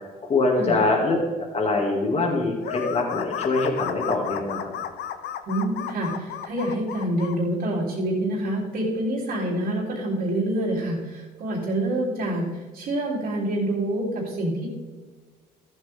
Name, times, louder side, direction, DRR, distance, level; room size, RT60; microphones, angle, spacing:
voice 1, 0.0-4.7, left 2 dB, 35° left, -1 dB, 2.6 m, -24 dB
sound 1, 2.6-7.4, left 9 dB, 80° left, 0.9 m, -33 dB
voice 2, 5.5-14.7, right 1 dB, 65° right, -6 dB, 3.7 m, -27 dB
14.0 x 8.7 x 3.8 m, 1.4 s
cardioid pair, 110°, 17 cm